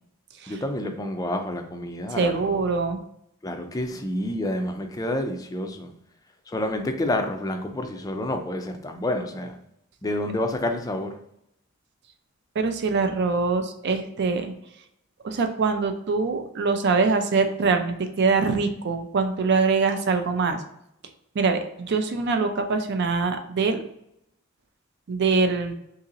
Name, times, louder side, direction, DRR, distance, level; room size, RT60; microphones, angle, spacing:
voice 1, 0.5-2.6 3.4-5.9 6.5-9.6 10.0-11.1, left 1 dB, 15° left, 5 dB, 0.4 m, -29 dB
voice 2, 2.1-3.0 12.6-14.5 15.2-20.6 21.3-23.8 25.1-25.7, right 4 dB, 55° right, 7 dB, 0.4 m, -23 dB
2.9 x 2.7 x 3.8 m, 0.77 s
head